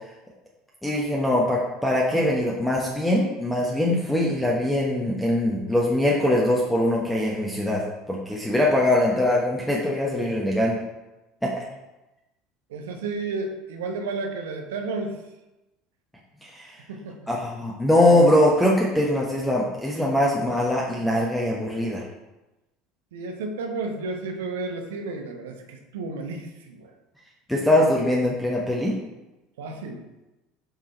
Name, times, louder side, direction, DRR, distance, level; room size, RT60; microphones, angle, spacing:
voice 1, 0.8-7.8 8.1-10.8 11.4-11.5 16.4-16.8 17.3-22.0 27.5-29.0, left 1 dB, 5° left, -4 dB, 1.1 m, -22 dB
voice 2, 12.7-15.2 16.9-17.2 23.1-26.9 29.6-30.1, right 3 dB, 65° right, 4 dB, 0.9 m, -32 dB
7.0 x 3.8 x 4.3 m, 1.0 s
figure-of-eight pair, 70°, 0 cm